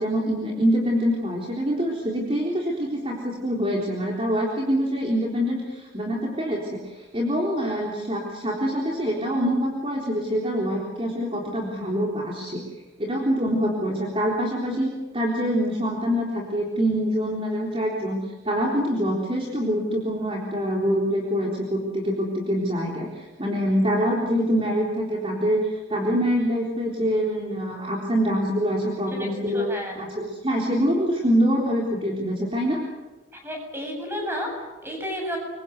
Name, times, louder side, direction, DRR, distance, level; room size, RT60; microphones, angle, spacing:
voice 1, 0.0-12.6 13.0-29.7 30.0-32.8, equal, 30° right, -2 dB, 3.8 m, -25 dB
voice 2, 29.5-30.1 33.3-35.4, equal, 10° right, 1 dB, 8.0 m, -32 dB
28.0 x 23.5 x 8.0 m, 1.2 s
head